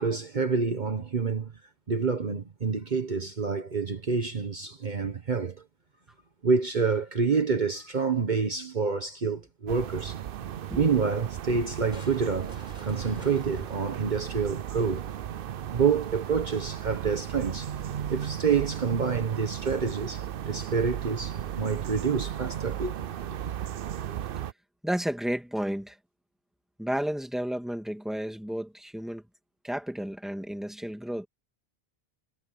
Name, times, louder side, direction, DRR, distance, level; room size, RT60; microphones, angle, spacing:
voice 1, 0.0-1.5 1.9-5.6 6.4-10.2 10.8-15.1 15.7-17.7 18.1-22.9 23.3-23.5, right 5 dB, 50° right, 1.3 m, -28 dB
sound 1, 9.7-24.5, right 10 dB, 65° right, 0.8 m, -35 dB
Crushing, 11.9-15.3, left 1 dB, 45° left, 4.1 m, -49 dB
voice 2, 24.8-26.0 26.8-29.2 29.6-31.3, equal, ahead, 2.4 m, -32 dB
omnidirectional pair, 1.0 m